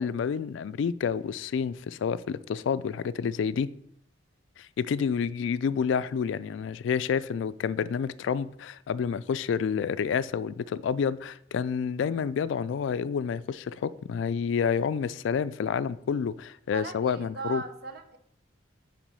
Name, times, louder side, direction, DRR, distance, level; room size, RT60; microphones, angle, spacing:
voice 1, 0.0-3.7 4.6-17.6, left 6 dB, 75° left, 0.3 m, -29 dB
voice 2, 16.7-18.2, right 4 dB, 50° right, 0.8 m, -38 dB
5.9 x 4.4 x 5.5 m
head